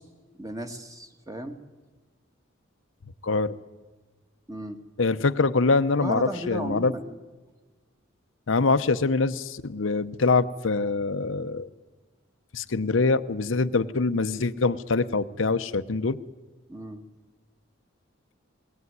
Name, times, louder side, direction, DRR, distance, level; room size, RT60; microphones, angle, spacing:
voice 1, 0.4-1.6 4.5-4.8 6.0-7.2 16.7-17.0, equal, 15° right, 7 dB, 1.5 m, -35 dB
voice 2, 3.2-3.5 5.0-6.9 8.5-11.7 12.5-16.2, left 3 dB, 75° left, 11 dB, 0.8 m, -24 dB
21.5 x 18.5 x 9.5 m, 1.3 s
head